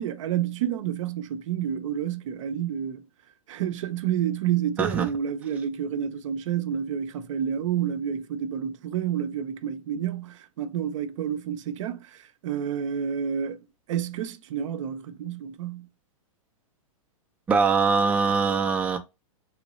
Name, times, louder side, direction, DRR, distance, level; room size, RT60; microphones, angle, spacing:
voice 1, 0.0-3.1 3.5-15.9, right 9 dB, 60° right, 0.5 m, -29 dB
voice 2, 17.5-19.0, right 5 dB, 10° right, 0.4 m, -22 dB
3.1 x 3.0 x 2.9 m
hypercardioid pair, 125°, 18 cm